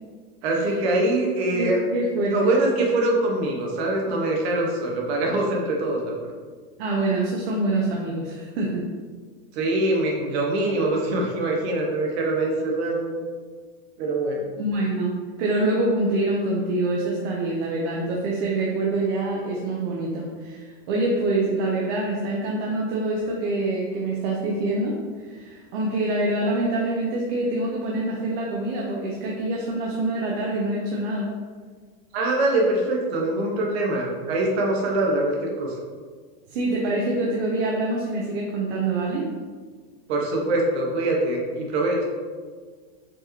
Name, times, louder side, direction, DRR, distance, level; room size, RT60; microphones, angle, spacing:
voice 1, 0.4-1.8 2.3-6.1 9.5-13.2 14.0-14.4 32.1-35.7 40.1-42.0, right 2 dB, 85° right, -1 dB, 1.1 m, -23 dB
voice 2, 1.5-2.5 6.8-8.9 14.6-31.3 36.5-39.2, right 2 dB, 70° right, -2 dB, 0.7 m, -25 dB
4.5 x 2.8 x 3.0 m, 1.5 s
supercardioid pair, 160°, 32 cm